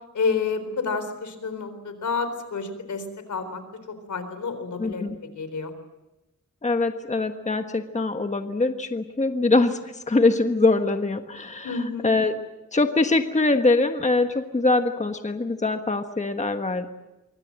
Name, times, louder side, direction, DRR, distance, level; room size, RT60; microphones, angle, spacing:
voice 1, 0.1-5.1 5.4-5.7 11.6-12.1, left 4 dB, 80° left, 10 dB, 4.1 m, -29 dB
voice 2, 4.8-5.2 6.6-9.8 10.1-11.7 12.0-12.4 12.7-16.9, left 3 dB, 25° left, 6 dB, 1.4 m, -23 dB
25.0 x 24.5 x 7.6 m, 1.0 s
wide cardioid pair, 130°, 29 cm